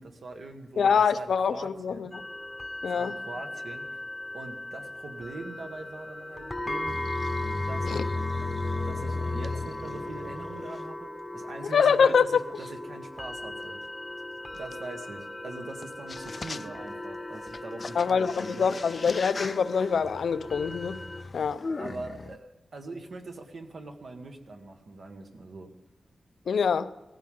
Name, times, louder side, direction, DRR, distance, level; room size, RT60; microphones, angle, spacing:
voice 1, 0.0-2.1 2.9-4.0 4.3-7.0 7.7-8.1 8.8-13.8 14.5-18.7 21.8-25.7, right 3 dB, 60° right, 1.7 m, -42 dB
voice 2, 0.8-2.2 2.8-3.2 7.8-8.1 11.6-12.3 17.9-21.0 21.3-21.6 26.5-26.9, left 6 dB, 85° left, 0.6 m, -25 dB
sound 1, 2.1-21.2, left 1 dB, 10° left, 1.0 m, -38 dB
sound 2, 6.9-10.8 11.6-11.7 12.6-12.7 14.7-14.8 15.8-15.9 16.1-16.9 17.3-22.4, left 3 dB, 35° left, 0.4 m, -36 dB
18.0 x 15.0 x 3.8 m
wide cardioid pair, 155°, 0 cm